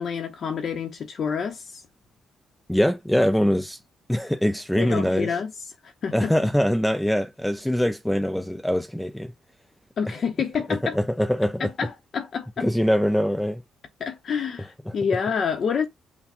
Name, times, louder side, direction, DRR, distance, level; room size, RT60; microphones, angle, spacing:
voice 1, 0.0-1.8 4.8-5.5 5.8-6.3 10.0-11.0 11.6-12.7 14.0-15.9, left 6 dB, 50° left, 0.7 m, -28 dB
voice 2, 2.7-3.8 4.1-5.3 6.1-9.3 10.0-10.1 10.7-11.7 12.6-13.6 14.9-15.0, equal, 5° left, 0.3 m, -23 dB
5.8 x 2.1 x 4.2 m
cardioid pair, 140°, 0 cm